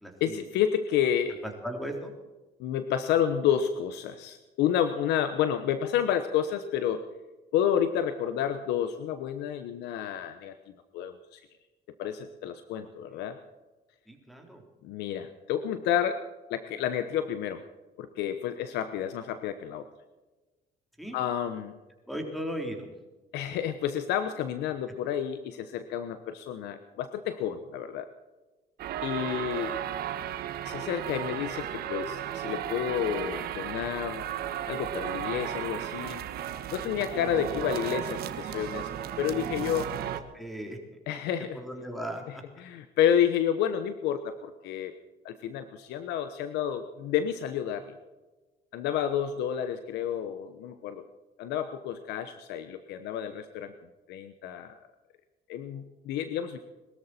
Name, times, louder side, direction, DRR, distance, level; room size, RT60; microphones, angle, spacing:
voice 1, 0.2-1.5 2.6-7.0 7.5-10.5 10.9-11.4 12.0-13.4 14.8-16.2 16.5-17.6 18.0-19.9 21.1-21.7 23.3-28.1 29.0-29.8 30.6-34.2 34.7-36.2 36.7-38.9 39.2-39.9 41.1-41.6 42.3-44.9 45.2-48.0 48.7-51.0 51.4-53.7 54.1-54.8 55.5-56.6, left 9 dB, 85° left, 10 dB, 1.1 m, -30 dB
voice 2, 1.6-2.1 14.1-14.6 21.0-21.2 22.1-22.9 40.3-40.8 41.7-42.4, equal, ahead, 3 dB, 3.8 m, -36 dB
sound 1, 28.8-40.2, right 10 dB, 70° right, 1.4 m, -34 dB
22.5 x 13.5 x 4.4 m, 1.2 s
cardioid pair, 110°, 17 cm